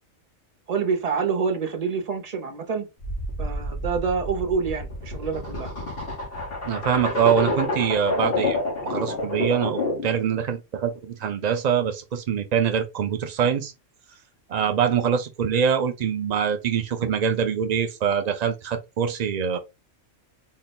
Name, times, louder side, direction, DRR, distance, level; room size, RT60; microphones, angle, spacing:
voice 1, 0.7-2.9 3.4-5.7 19.5-19.6, right 5 dB, 40° right, 0.7 m, -27 dB
sound 1, 3.0-10.2, left 2 dB, 50° left, 1.4 m, -28 dB
voice 2, 6.6-8.6 8.8-13.7 14.5-19.6, right 7 dB, 85° right, 0.3 m, -24 dB
3.7 x 2.1 x 4.0 m
omnidirectional pair, 1.3 m